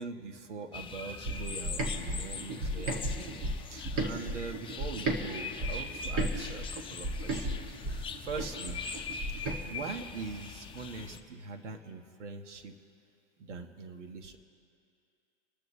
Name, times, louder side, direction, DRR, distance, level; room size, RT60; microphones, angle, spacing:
voice 1, 0.0-7.6 7.8-8.8 9.3-12.8 13.4-14.4, right 4 dB, 80° right, 6 dB, 1.6 m, -43 dB
sound 1, 0.7-11.2, left 5 dB, 15° left, 0.8 m, -42 dB
sound 2, 1.2-5.2 5.6-9.6, right 1 dB, 40° right, 2.2 m, -34 dB
26.5 x 12.5 x 3.2 m, 2.6 s
hypercardioid pair, 115°, 35 cm